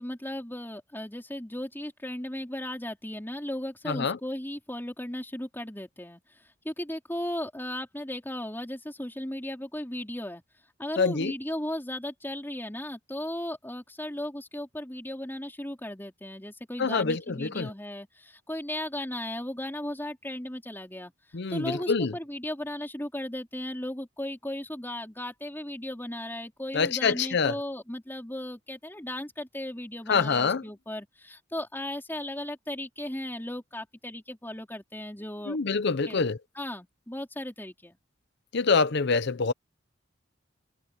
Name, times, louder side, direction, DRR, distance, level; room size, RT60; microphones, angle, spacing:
voice 1, 0.0-6.2 6.6-10.4 10.8-21.1 21.5-35.6 36.0-36.2 36.6-37.9, left 1 dB, 10° left, 4.2 m, -36 dB
voice 2, 3.9-4.2 11.0-11.3 16.8-17.7 21.3-22.1 26.7-27.5 30.1-30.6 35.5-36.4 38.5-39.5, left 5 dB, 60° left, 0.7 m, -25 dB
head